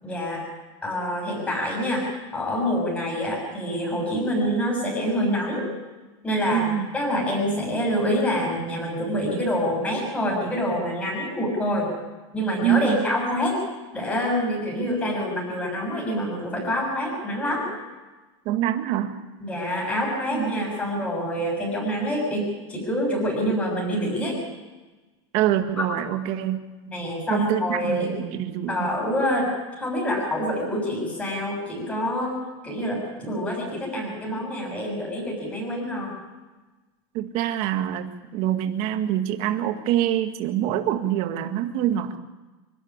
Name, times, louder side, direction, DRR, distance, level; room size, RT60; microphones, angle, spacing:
voice 1, 0.0-0.4 0.8-5.7 6.2-11.9 12.3-13.6 13.9-17.7 19.4-24.4 25.8-25.9 26.9-28.2 28.7-29.5 29.8-32.4 32.6-36.1, equal, 10° left, -2 dB, 6.9 m, -26 dB
voice 2, 6.5-6.9 12.6-13.0 14.8-14.9 18.5-19.2 20.3-20.5 25.3-26.6 27.3-29.0 37.1-42.2, right 11 dB, 40° right, 6 dB, 1.9 m, -25 dB
25.5 x 12.5 x 9.9 m, 1.2 s
supercardioid pair, 165°, 15 cm